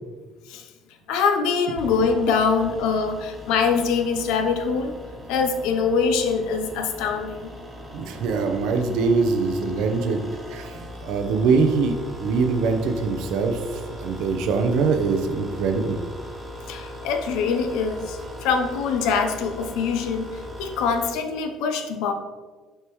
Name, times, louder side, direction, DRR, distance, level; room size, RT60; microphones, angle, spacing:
voice 1, 1.1-4.9 5.3-7.5 16.7-20.3 20.6-22.1, left 5 dB, 80° left, 6 dB, 0.6 m, -23 dB
sound 1, 1.8-21.1, equal, 25° right, 1.2 m, -39 dB
voice 2, 7.9-16.0, right 4 dB, 75° right, 5 dB, 0.7 m, -23 dB
6.5 x 4.6 x 3.1 m, 1.4 s
supercardioid pair, 90°, 0 cm